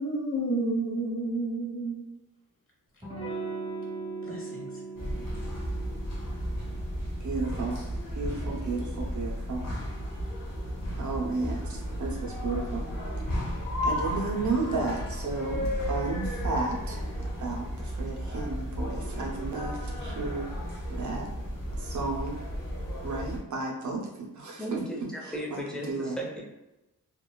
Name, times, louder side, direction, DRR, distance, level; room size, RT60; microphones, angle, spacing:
voice 1, 0.0-2.0 4.2-4.7, right 2 dB, 40° left, -3 dB, 0.9 m, -30 dB
Electric guitar / Strum, 3.0-8.4, right 3 dB, 15° right, 1.0 m, -40 dB
sound 1, 5.0-23.4, equal, 85° left, 0.8 m, -33 dB
voice 2, 7.2-7.8 8.1-9.7 11.0-12.9 13.8-20.5 20.9-21.3 21.7-22.4 23.0-24.8 25.2-26.2, right 3 dB, 60° right, -1 dB, 0.6 m, -33 dB
voice 3, 24.6-26.4, right 1 dB, ahead, -2 dB, 0.6 m, -35 dB
2.8 x 2.2 x 2.2 m, 0.96 s
wide cardioid pair, 95°, 33 cm